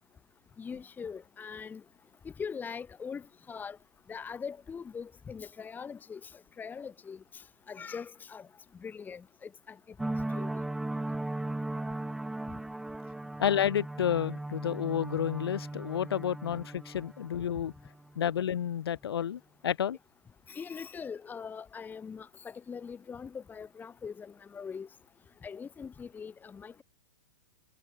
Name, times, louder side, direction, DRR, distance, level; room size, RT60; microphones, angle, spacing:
voice 1, 0.6-1.8 2.2-3.8 4.1-6.3 6.6-7.2 7.7-8.5 8.8-9.8 10.3-10.5 16.1-16.2 20.5-24.9 25.4-26.8, left 6 dB, 15° left, 1.2 m, -42 dB
sound 1, 10.0-18.4, right 2 dB, 5° right, 0.3 m, -37 dB
voice 2, 13.4-17.7 18.1-20.0, left 9 dB, 80° left, 1.6 m, -30 dB
hypercardioid pair, 125°, 13 cm